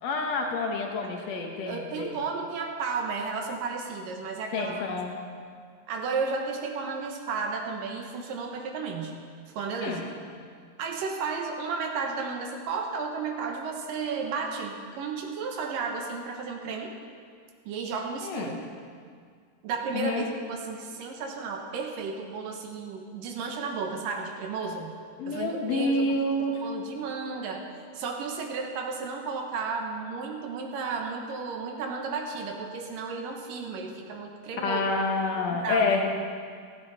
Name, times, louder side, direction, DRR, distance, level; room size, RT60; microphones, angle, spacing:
voice 1, 0.0-2.2 4.5-5.2 9.8-10.1 18.2-18.6 19.9-20.2 25.2-26.7 34.6-36.1, left 2 dB, 55° left, 2 dB, 2.2 m, -28 dB
voice 2, 1.5-4.8 5.9-9.1 9.5-10.0 10.8-16.9 17.7-18.5 19.6-20.2 20.5-24.9 25.3-26.0 26.6-27.7 27.9-34.8 35.5-36.0, right 4 dB, 75° right, 2 dB, 2.8 m, -33 dB
15.5 x 15.0 x 4.2 m, 2.1 s
omnidirectional pair, 4.0 m